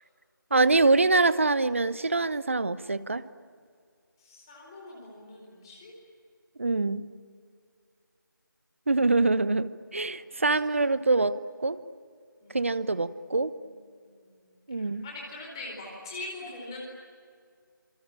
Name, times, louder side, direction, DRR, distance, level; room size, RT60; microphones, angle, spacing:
voice 1, 0.5-3.2 6.6-7.1 8.9-11.4 11.6-11.8 12.5-13.5 14.7-15.0, right 3 dB, 35° right, 16 dB, 0.9 m, -24 dB
voice 2, 4.2-5.9 12.4-13.0 13.4-13.5 13.8-14.3 15.0-16.8, left 2 dB, 10° left, -2 dB, 4.3 m, -42 dB
27.0 x 24.0 x 8.8 m, 2.1 s
figure-of-eight pair, 170°, 11 cm